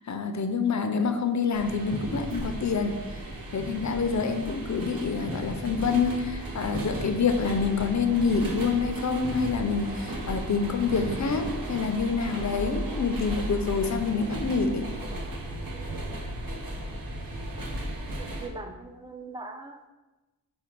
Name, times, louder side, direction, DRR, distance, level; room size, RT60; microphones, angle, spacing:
voice 1, 0.1-2.9 3.5-14.9, left 5 dB, 50° left, 6 dB, 0.5 m, -27 dB
sound 1, 1.5-18.5, right 1 dB, 65° right, 0.9 m, -35 dB
voice 2, 18.2-19.9, right 2 dB, 15° right, 3 dB, 0.5 m, -41 dB
5.1 x 2.2 x 4.4 m, 1.1 s
wide cardioid pair, 55°, 37 cm